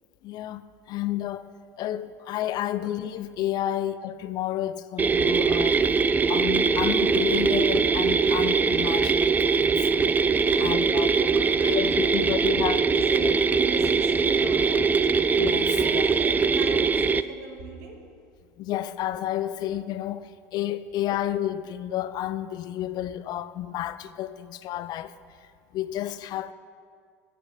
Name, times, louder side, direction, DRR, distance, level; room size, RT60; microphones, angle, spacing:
voice 1, 0.2-1.5 1.8-5.8 6.3-9.8 10.6-11.1 11.6-12.8 13.2-13.3 15.4-16.1 18.6-25.2 25.7-26.5, left 12 dB, 50° left, 0.4 m, -31 dB
sound 1, 5.0-17.2, right 5 dB, 20° right, 0.3 m, -22 dB
voice 2, 10.4-12.2 12.4-14.9 15.6-18.0, right 2 dB, 70° right, 1.6 m, -39 dB
9.5 x 5.1 x 7.0 m
hypercardioid pair, 80°, 9 cm